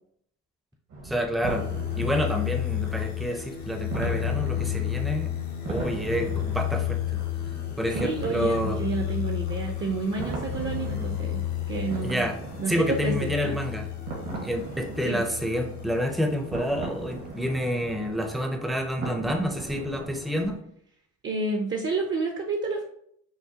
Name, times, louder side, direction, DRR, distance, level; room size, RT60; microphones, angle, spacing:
sound 1, 0.9-20.6, right 2 dB, 70° right, 1.5 m, -39 dB
voice 1, 1.0-1.7 2.0-5.3 5.7-7.3 7.8-8.9 12.0-12.4 12.7-13.9 14.4-20.6, equal, ahead, 4 dB, 0.5 m, -28 dB
sound 2, 1.4-16.7 17.2-18.3, left 13 dB, 70° left, 0.7 m, -32 dB
voice 2, 7.9-11.4 11.7-12.3 12.6-13.6 15.0-15.2 21.2-22.8, right 3 dB, 40° right, 2 dB, 0.6 m, -30 dB
5.7 x 2.1 x 2.8 m, 0.69 s
cardioid pair, 90°, 30 cm